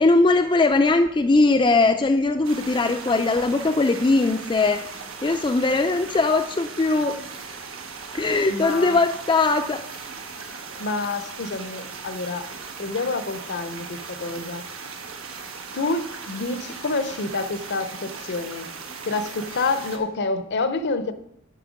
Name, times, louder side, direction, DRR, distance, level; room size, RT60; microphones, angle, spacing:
voice 1, 0.0-4.8 5.2-7.2 8.1-9.8, left 3 dB, 25° left, 0.4 m, -20 dB
sound 1, 2.4-20.0, right 5 dB, 85° right, 1.3 m, -38 dB
voice 2, 8.5-9.0 10.8-12.5 12.8-14.7 15.7-18.7 19.1-21.1, left 3 dB, 55° left, 0.7 m, -28 dB
9.9 x 5.5 x 5.1 m
head